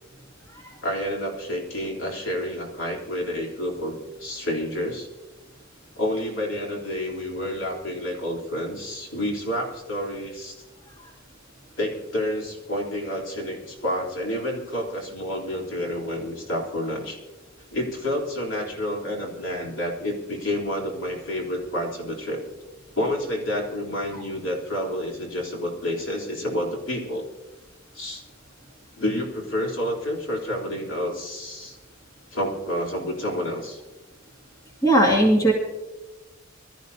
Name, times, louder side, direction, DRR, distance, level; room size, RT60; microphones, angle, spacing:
voice 1, 0.8-5.1 6.0-10.6 11.8-17.2 17.7-22.4 23.0-27.2 27.9-28.2 29.0-31.8 32.3-33.8, left 1 dB, 70° left, -2 dB, 3.6 m, -29 dB
voice 2, 34.8-35.5, right 1 dB, 20° left, -1 dB, 2.3 m, -17 dB
24.5 x 13.5 x 2.8 m, 1.1 s
head